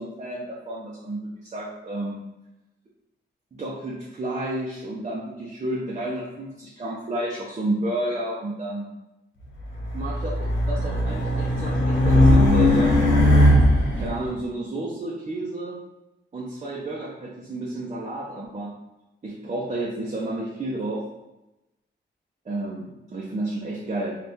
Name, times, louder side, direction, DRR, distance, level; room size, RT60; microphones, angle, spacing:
voice 1, 0.0-2.2 3.5-8.9 9.9-13.3 14.0-15.8 16.3-18.7 19.2-21.0 22.4-24.1, right 1 dB, 35° right, -4 dB, 0.7 m, -31 dB
Race car auto racing, 9.7-14.1, left 1 dB, 80° left, 1.2 m, -18 dB
3.5 x 2.4 x 4.2 m, 0.95 s
wide cardioid pair, 110°, 19 cm